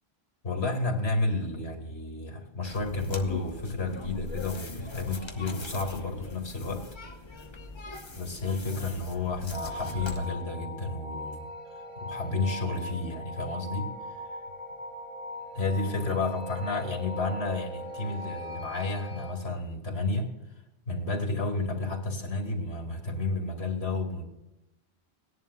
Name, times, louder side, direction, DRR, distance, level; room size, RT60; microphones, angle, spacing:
voice 1, 0.4-6.9 8.2-11.4 12.0-13.9 15.5-20.3 20.9-24.2, left 3 dB, 70° left, 3 dB, 2.5 m, -31 dB
sound 1, 2.6-10.3, left 2 dB, 25° left, 1.0 m, -42 dB
sound 2, 9.5-19.3, left 1 dB, 45° right, 2.5 m, -40 dB
18.5 x 11.0 x 2.3 m, 0.94 s
omnidirectional pair, 1.1 m